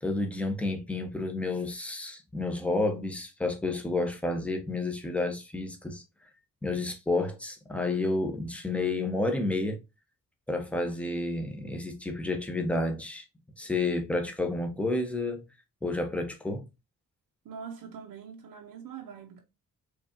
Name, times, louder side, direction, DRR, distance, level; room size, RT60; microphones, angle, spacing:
voice 1, 0.0-6.0 6.6-9.8 10.5-13.2 13.6-15.4 15.8-16.6, left 2 dB, 5° left, 0.9 m, -30 dB
voice 2, 17.4-19.4, right 6 dB, 80° right, 0.9 m, -43 dB
4.6 x 2.6 x 2.7 m
cardioid pair, 90°, 34 cm